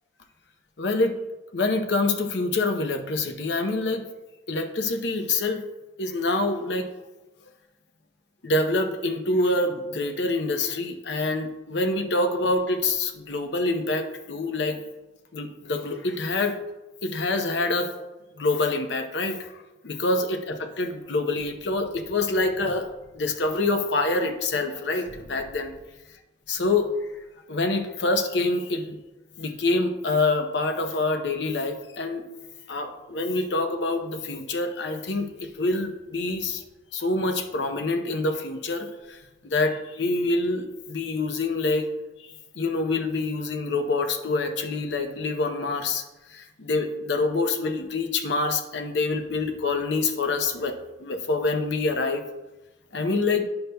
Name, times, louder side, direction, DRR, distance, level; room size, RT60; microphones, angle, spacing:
voice 1, 0.8-1.2 1.5-4.0 4.5-5.6 6.0-6.9 8.4-14.8 15.3-16.6 17.0-18.0 18.4-19.5 19.8-25.7 26.5-26.9 27.5-29.0 29.4-32.2 32.7-36.6 36.9-39.2 39.4-41.9 42.2-42.3 42.5-46.0 46.3-52.2 52.9-53.4, left 2 dB, 65° left, 6 dB, 0.7 m, -26 dB
9.6 x 6.7 x 2.2 m, 1.1 s
head